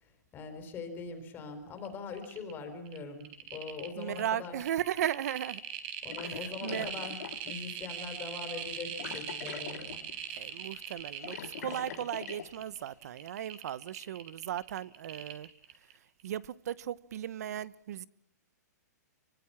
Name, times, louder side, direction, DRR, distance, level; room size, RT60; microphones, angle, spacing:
voice 1, 0.0-4.6 6.0-7.2 7.4-10.0, left 4 dB, 20° left, 4.6 m, -42 dB
sound 1, 1.8-1.9 2.1-2.5 2.9-15.9 16.2-16.3, right 9 dB, 40° right, 4.4 m, -41 dB
voice 2, 4.0-5.6 6.2-6.9 10.3-15.5 16.2-18.1, right 11 dB, 65° right, 0.9 m, -36 dB
sound 2, 6.1-7.6 8.0-8.1 9.0-10.2 10.5-10.7 11.0-12.5, left 9 dB, 65° left, 2.1 m, -43 dB
25.5 x 24.0 x 5.8 m
hypercardioid pair, 150°, 9 cm